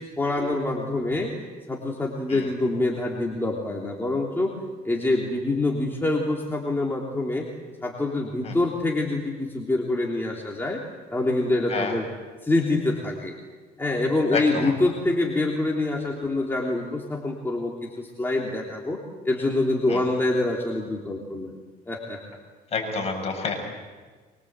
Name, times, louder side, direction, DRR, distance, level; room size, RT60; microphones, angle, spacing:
voice 1, 0.2-1.3 1.7-4.6 4.8-7.5 7.8-10.8 11.1-12.0 12.4-13.4 13.8-19.0 19.2-21.6 21.9-22.2, left 2 dB, 15° left, -2 dB, 3.4 m, -25 dB
voice 2, 14.3-14.7 19.9-20.0 22.7-23.6, left 4 dB, 40° left, 3 dB, 7.2 m, -28 dB
24.0 x 23.5 x 8.2 m, 1.4 s
cardioid pair, 110°, 17 cm